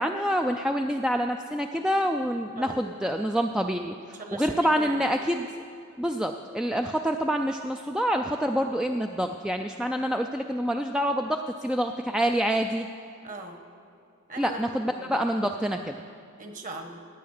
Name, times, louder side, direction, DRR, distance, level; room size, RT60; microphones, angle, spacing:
voice 1, 0.0-5.5 6.0-12.9 14.4-16.0, equal, 5° right, 4 dB, 0.3 m, -27 dB
voice 2, 2.6-3.0 4.2-5.2 13.2-13.6 14.3-14.6 14.9-15.1 16.4-17.1, right 2 dB, 35° right, 5 dB, 1.3 m, -40 dB
16.5 x 9.3 x 6.5 m, 2.5 s
head